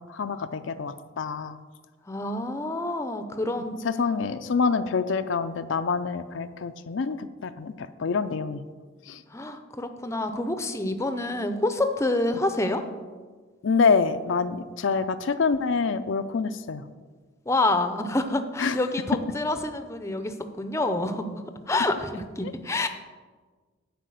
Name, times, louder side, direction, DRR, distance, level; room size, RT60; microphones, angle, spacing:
voice 1, 0.0-1.6 3.8-7.7 8.0-8.6 9.1-9.2 13.6-16.8 18.6-18.8, left 5 dB, 65° left, 10 dB, 0.4 m, -26 dB
voice 2, 2.1-3.8 9.3-12.8 17.5-21.3 21.7-22.9, left 2 dB, 15° left, 8 dB, 0.6 m, -27 dB
10.5 x 4.9 x 7.7 m, 1.4 s
head